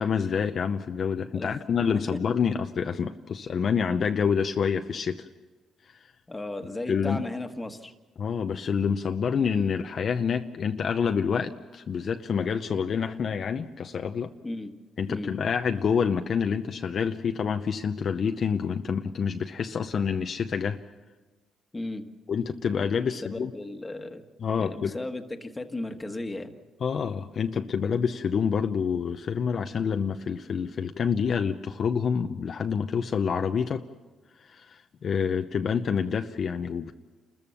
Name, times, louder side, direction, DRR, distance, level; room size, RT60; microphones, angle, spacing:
voice 1, 0.0-5.3 6.9-7.2 8.2-14.3 15.0-20.8 22.3-23.5 24.4-25.0 26.8-33.9 34.4-36.9, left 6 dB, 55° left, 6 dB, 0.7 m, -27 dB
voice 2, 6.3-7.9 14.4-14.7 15.1-15.3 21.7-22.1 23.1-24.2 24.6-26.5, left 2 dB, 15° left, 6 dB, 1.6 m, -35 dB
29.0 x 14.0 x 7.1 m, 1.3 s
cardioid pair, 90°, 0 cm